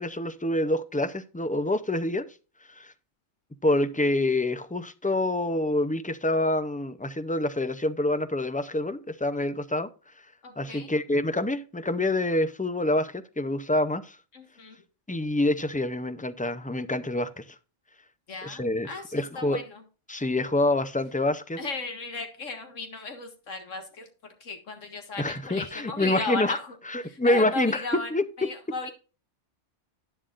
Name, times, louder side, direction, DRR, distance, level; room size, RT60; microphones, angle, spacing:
voice 1, 0.0-2.2 2.8-2.9 3.6-9.9 10.6-14.2 15.1-17.4 18.4-19.6 20.1-21.6 25.2-26.6 26.9-28.2, left 1 dB, 15° left, 0.3 m, -26 dB
voice 2, 10.4-10.9 14.3-14.8 18.3-19.8 21.6-24.1 24.4-26.7 27.0-28.1 28.4-28.9, left 3 dB, 85° left, 2.1 m, -36 dB
11.5 x 10.0 x 2.5 m
omnidirectional pair, 1.3 m